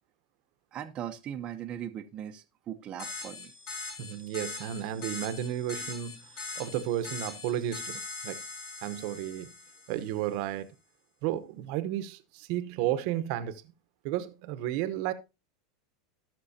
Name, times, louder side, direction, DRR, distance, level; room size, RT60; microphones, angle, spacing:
voice 1, 0.7-3.5, right 10 dB, 30° right, 0.8 m, -39 dB
sound 1, 3.0-10.2, left 4 dB, 65° left, 5.2 m, -41 dB
voice 2, 4.0-6.2 6.6-8.4 8.8-9.5 9.9-10.7 11.2-13.6 14.0-15.1, right 12 dB, 55° right, 1.0 m, -32 dB
18.0 x 6.2 x 2.8 m
supercardioid pair, 135°, 3 cm